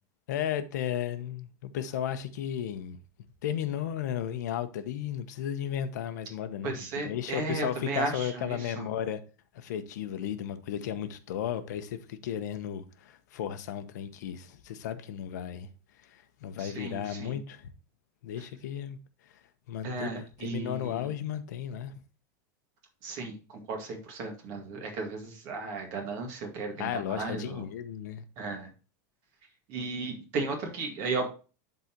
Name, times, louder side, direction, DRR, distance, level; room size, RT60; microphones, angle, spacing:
voice 1, 0.3-3.0 3.4-6.8 7.0-9.2 9.5-15.7 16.1-17.7 18.2-19.0 19.7-21.9 26.7-28.2, left 10 dB, 75° left, 0.9 m, -34 dB
voice 2, 6.6-8.9 16.6-17.4 19.8-21.1 23.0-27.6 28.4-28.7 29.7-31.3, right 3 dB, 40° right, 1.9 m, -35 dB
11.5 x 4.0 x 2.9 m
supercardioid pair, 175°, 9 cm